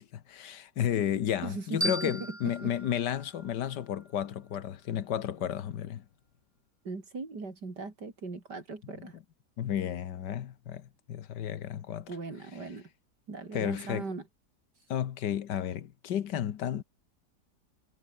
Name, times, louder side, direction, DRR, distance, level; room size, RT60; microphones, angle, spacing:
voice 1, 0.0-6.0 9.6-12.1 13.5-14.1 14.9-16.8, left 10 dB, 85° left, 1.7 m, -32 dB
voice 2, 1.4-2.7 6.8-9.2 12.1-12.9 13.3-14.2, right 3 dB, 75° right, 4.5 m, -39 dB
sound 1, 1.8-4.6, right 1 dB, 10° right, 3.7 m, -38 dB
omnidirectional pair, 1.8 m